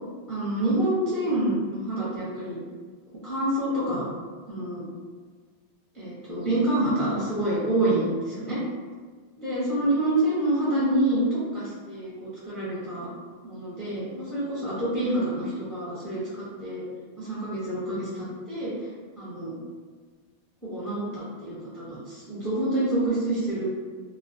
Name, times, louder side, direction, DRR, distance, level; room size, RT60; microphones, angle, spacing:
voice 1, 0.3-2.6 3.2-4.0 4.5-4.8 5.9-8.6 9.4-13.1 13.4-16.8 17.2-18.9 19.2-19.6 20.6-23.7, right 1 dB, ahead, -10 dB, 0.5 m, -27 dB
2.3 x 2.3 x 2.5 m, 1.5 s
omnidirectional pair, 1.2 m